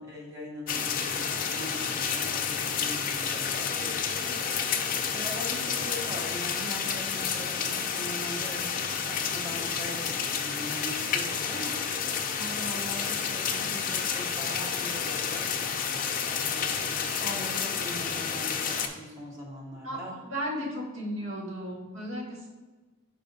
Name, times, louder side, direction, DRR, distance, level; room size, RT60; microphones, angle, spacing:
voice 1, 0.0-20.2, equal, 15° right, -4 dB, 1.2 m, -41 dB
sound 1, 0.7-18.9, left 6 dB, 40° left, 0.5 m, -30 dB
voice 2, 19.8-22.5, equal, 70° right, -2 dB, 1.5 m, -35 dB
5.1 x 4.8 x 4.0 m, 1.3 s
head